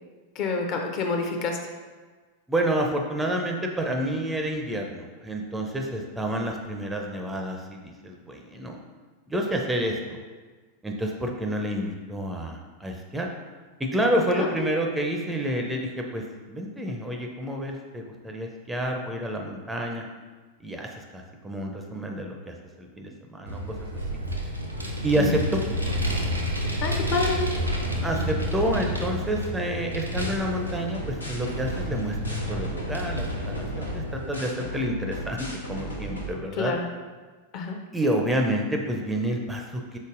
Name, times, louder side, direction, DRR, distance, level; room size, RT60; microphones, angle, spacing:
voice 1, 0.4-1.6 14.3-14.7 25.2-25.3 26.8-27.5 36.6-36.8 37.5-37.8, left 4 dB, 40° left, 3 dB, 0.6 m, -28 dB
voice 2, 2.5-8.8 9.3-10.2 10.8-13.3 13.8-20.1 20.6-23.9 25.0-25.6 28.0-36.7 37.9-40.0, right 1 dB, 10° right, 1 dB, 0.5 m, -29 dB
Vehicle, 23.5-34.4, equal, 90° right, 0.6 m, -30 dB
sound 1, 30.2-36.3, equal, 85° left, 0.7 m, -35 dB
5.2 x 3.9 x 2.5 m, 1.4 s
figure-of-eight pair, 90°, 0 cm